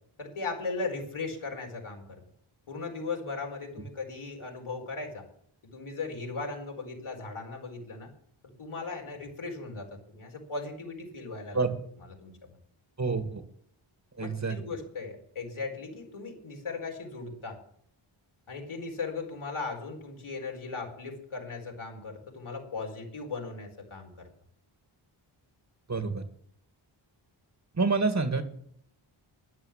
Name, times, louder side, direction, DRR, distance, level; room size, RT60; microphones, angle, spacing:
voice 1, 0.2-2.2 2.7-5.3 5.7-8.1 8.6-11.6 12.0-12.6 14.2-17.6 18.5-24.3, left 4 dB, 75° left, 1 dB, 4.4 m, -37 dB
voice 2, 13.0-13.4 14.2-14.6 25.9-26.2 27.7-28.4, right 4 dB, 35° right, 8 dB, 1.9 m, -27 dB
13.0 x 10.5 x 7.5 m, 0.65 s
wide cardioid pair, 90°, 50 cm